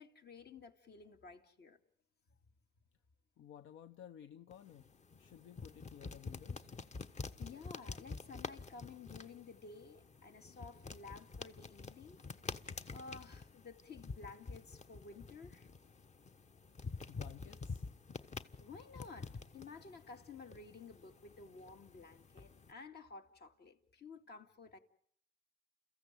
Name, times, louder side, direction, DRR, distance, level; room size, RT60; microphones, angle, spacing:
voice 1, 0.0-1.8 7.4-12.2 12.9-15.7 18.6-24.8, left 4 dB, 55° left, 2.3 m, -53 dB
voice 2, 3.4-4.9 5.2-6.7 17.1-17.9, left 10 dB, 75° left, 0.9 m, -55 dB
sound 1, 4.5-22.7, left 4 dB, 35° left, 1.3 m, -48 dB
29.5 x 15.0 x 9.1 m
cardioid pair, 90°, 20 cm